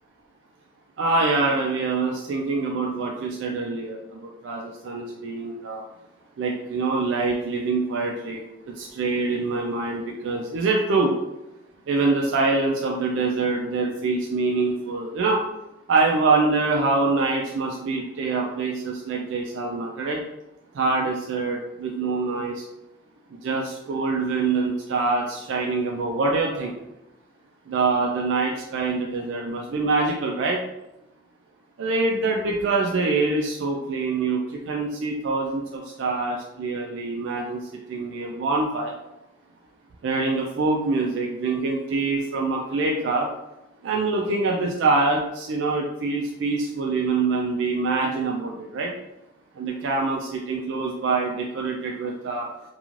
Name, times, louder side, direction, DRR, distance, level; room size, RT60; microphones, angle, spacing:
voice 1, 1.0-5.8 6.4-11.1 11.9-15.4 15.9-20.2 20.7-22.6 23.3-26.8 27.7-30.6 31.8-37.6 37.9-38.9 40.0-43.3 43.8-48.9 49.6-52.5, right 3 dB, 75° right, -1 dB, 0.3 m, -25 dB
2.4 x 2.3 x 3.0 m, 0.94 s
head